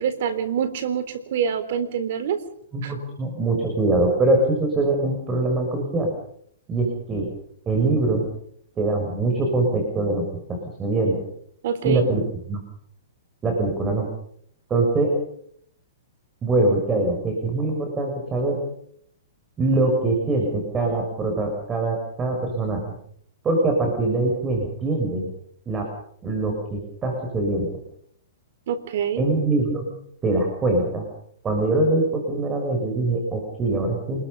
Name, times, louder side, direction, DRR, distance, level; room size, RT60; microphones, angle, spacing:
voice 1, 0.0-2.4 2.8-2.9 11.6-12.0 28.7-29.2, right 8 dB, 60° right, 11 dB, 3.7 m, -25 dB
voice 2, 2.7-6.1 6.7-7.3 7.7-8.3 8.8-11.2 11.8-12.2 12.5-12.6 13.4-14.1 14.7-15.2 16.4-18.6 19.6-22.9 23.4-25.3 25.7-25.9 26.2-27.7 29.2-30.0 30.2-31.1 31.4-34.2, right 2 dB, 20° right, 2 dB, 7.1 m, -23 dB
28.0 x 21.5 x 5.6 m, 0.68 s
hypercardioid pair, 140°, 0 cm